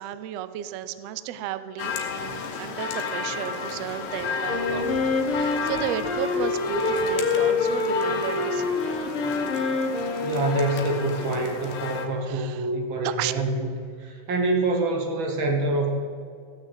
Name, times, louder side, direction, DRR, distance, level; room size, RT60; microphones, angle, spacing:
voice 1, 0.0-9.0 12.2-12.7 13.0-13.3, right 11 dB, 85° right, 12 dB, 1.4 m, -34 dB
sound 1, 1.8-12.1, left 5 dB, 85° left, 2.9 m, -32 dB
Wind instrument woodwind instrument, 4.5-11.1, left 3 dB, 55° left, 1.8 m, -26 dB
voice 2, 10.2-13.7 14.0-16.0, right 2 dB, 50° right, 3 dB, 1.6 m, -26 dB
16.0 x 6.6 x 8.1 m, 2.3 s
omnidirectional pair, 3.7 m